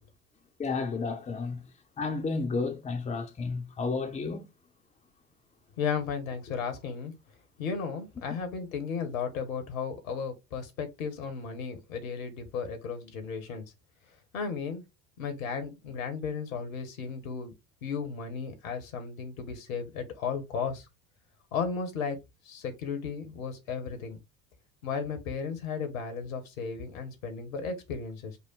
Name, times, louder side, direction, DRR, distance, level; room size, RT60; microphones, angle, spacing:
voice 1, 0.6-1.6 2.0-4.5, left 4 dB, 15° left, 0.7 m, -32 dB
voice 2, 5.8-7.1 7.6-13.6 14.3-14.8 15.2-17.5 17.8-20.8 21.5-22.2 22.4-24.2 24.8-28.4, left 6 dB, 75° left, 1.3 m, -34 dB
5.6 x 2.1 x 3.8 m
figure-of-eight pair, 65°, 42 cm